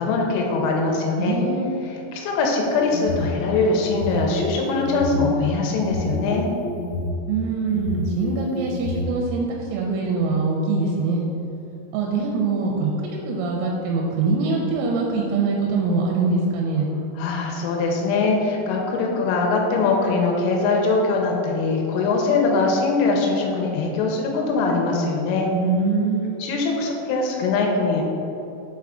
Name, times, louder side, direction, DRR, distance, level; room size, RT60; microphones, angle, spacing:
voice 1, 0.0-1.4 1.9-6.5 17.2-25.5 26.4-28.0, left 3 dB, 85° left, 0 dB, 3.2 m, -22 dB
voice 2, 1.2-2.0 7.3-11.2 11.9-16.9 25.5-26.5, right 4 dB, 90° right, -1 dB, 3.3 m, -23 dB
sound 1, 2.6-3.3 3.8-5.2 5.8-7.1 7.7-9.0, left 2 dB, 65° left, 2.1 m, -29 dB
7.2 x 3.7 x 3.6 m, 2.9 s
omnidirectional pair, 5.9 m